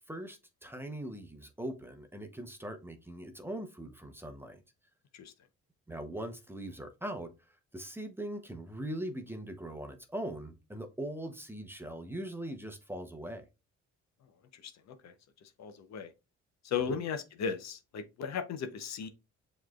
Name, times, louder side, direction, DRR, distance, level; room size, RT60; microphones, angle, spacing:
voice 1, 0.0-4.6 5.9-7.3 7.7-13.4 16.9-17.0, right 1 dB, 5° right, 0.8 m, -41 dB
voice 2, 15.6-16.1 16.6-19.1, left 6 dB, 60° left, 0.8 m, -36 dB
7.0 x 3.2 x 2.3 m
cardioid pair, 90°, 30 cm